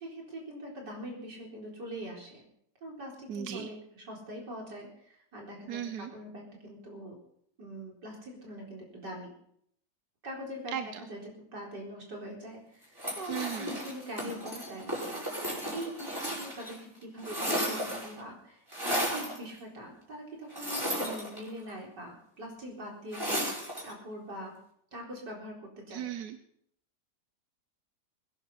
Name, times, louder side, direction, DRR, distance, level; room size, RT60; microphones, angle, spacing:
voice 1, 0.0-2.4 2.8-5.8 6.1-7.2 7.6-9.3 10.2-10.7 11.1-11.2 11.5-24.5 24.9-26.1, right 1 dB, 85° right, -1 dB, 4.9 m, -43 dB
voice 2, 3.3-3.7 5.7-6.1 10.7-11.0 13.2-13.8 25.9-26.4, right 9 dB, 70° right, 9 dB, 1.4 m, -36 dB
sound 1, 13.0-16.8 17.0-18.2 18.7-19.4 20.5-21.7 23.1-23.9, equal, 10° right, 5.5 m, -34 dB
21.0 x 11.0 x 5.6 m, 0.68 s
omnidirectional pair, 1.8 m